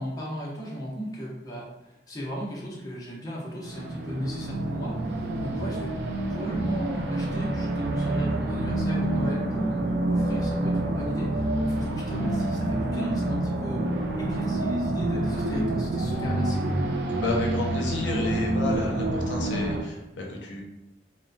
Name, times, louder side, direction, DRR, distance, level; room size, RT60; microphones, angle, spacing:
voice 1, 0.0-5.9 6.3-16.9, equal, 20° left, -5 dB, 0.5 m, -36 dB
sound 1, 3.6-19.8, right 1 dB, 65° right, 0.4 m, -27 dB
voice 2, 17.1-20.6, left 2 dB, 90° left, -1 dB, 0.6 m, -31 dB
2.9 x 2.1 x 2.5 m, 0.94 s
head